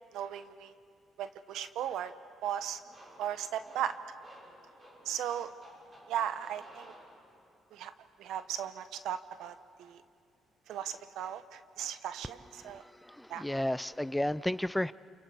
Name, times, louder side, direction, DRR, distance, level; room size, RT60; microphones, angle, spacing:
voice 1, 0.1-0.7 1.2-2.1 2.4-2.8 3.2-4.0 5.0-5.5 6.1-6.9 7.7-7.9 8.2-10.0 10.7-12.8 13.3-13.4, right 10 dB, 80° right, 12 dB, 0.9 m, -37 dB
sound 1, 2.8-7.6, right 1 dB, 35° right, 6.4 m, -56 dB
voice 2, 12.6-14.9, left 1 dB, 5° left, 17 dB, 0.5 m, -33 dB
30.0 x 28.0 x 4.9 m, 2.3 s
supercardioid pair, 75°, 0 cm